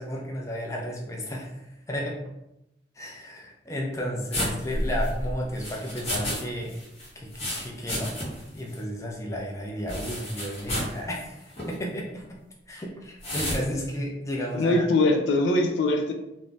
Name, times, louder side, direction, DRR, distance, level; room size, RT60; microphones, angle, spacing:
voice 1, 0.0-2.2 3.0-6.8 7.2-8.2 8.5-12.2 12.7-14.8, equal, 15° left, -1 dB, 0.4 m, -33 dB
sound 1, 4.3-6.4 6.7-8.5 8.8-8.9 9.9-11.0 11.5-11.7 13.2-13.6, equal, 35° left, 0.9 m, -31 dB
voice 2, 14.5-16.1, left 2 dB, 85° left, 3 dB, 0.4 m, -22 dB
2.5 x 2.0 x 3.3 m, 0.87 s
head